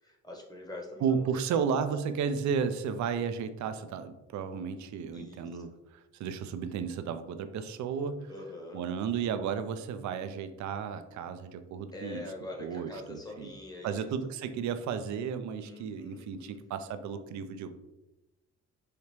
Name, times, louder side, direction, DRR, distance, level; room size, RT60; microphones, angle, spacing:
voice 1, 0.0-1.6 5.1-5.6 8.3-8.8 11.9-14.1 15.6-16.9, left 2 dB, 15° left, 0 dB, 0.9 m, -44 dB
voice 2, 1.0-5.7 6.2-8.3 8.7-12.2 12.6-13.5 13.8-17.7, right 6 dB, 70° right, 9 dB, 0.5 m, -33 dB
4.9 x 2.7 x 3.0 m, 0.99 s
cardioid pair, 90°, 30 cm